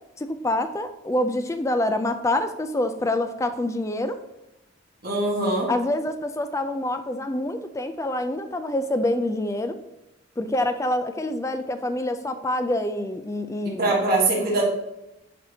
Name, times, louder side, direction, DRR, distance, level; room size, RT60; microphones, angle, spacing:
voice 1, 0.2-4.2 5.7-9.8 10.4-13.9, left 1 dB, 15° left, 9 dB, 0.3 m, -26 dB
voice 2, 5.0-5.7 13.8-14.6, right 2 dB, 45° right, -4 dB, 1.7 m, -22 dB
10.5 x 4.3 x 2.8 m, 0.91 s
head